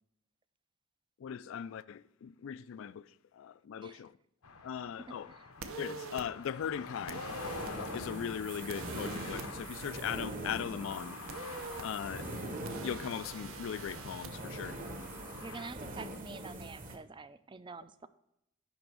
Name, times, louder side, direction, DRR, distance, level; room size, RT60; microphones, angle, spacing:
voice 1, 1.2-4.1 4.6-5.3 5.8-7.3 7.9-11.2 11.8-12.3 12.8-14.8, left 8 dB, 60° left, 0.3 m, -39 dB
sound 1, 4.4-15.7, left 4 dB, 85° left, 0.9 m, -47 dB
voice 2, 5.1-5.5 15.4-18.1, right 4 dB, 20° right, 0.3 m, -47 dB
sound 2, 5.6-6.2 7.1-7.7 8.7-9.5 11.3-11.8 12.7-14.3, right 4 dB, 65° right, 0.7 m, -45 dB
sound 3, 7.3-17.0, right 2 dB, 35° right, 1.0 m, -43 dB
10.5 x 3.4 x 6.1 m
head